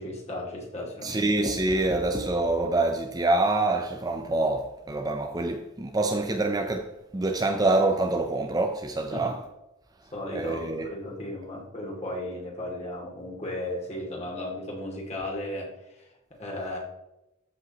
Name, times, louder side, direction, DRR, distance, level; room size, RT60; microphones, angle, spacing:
voice 1, 0.0-1.6 9.1-9.3 10.1-16.8, left 1 dB, 35° left, 2.5 m, -35 dB
voice 2, 1.0-9.4 10.3-10.9, right 2 dB, 20° right, 0.5 m, -26 dB
13.5 x 5.3 x 2.9 m
head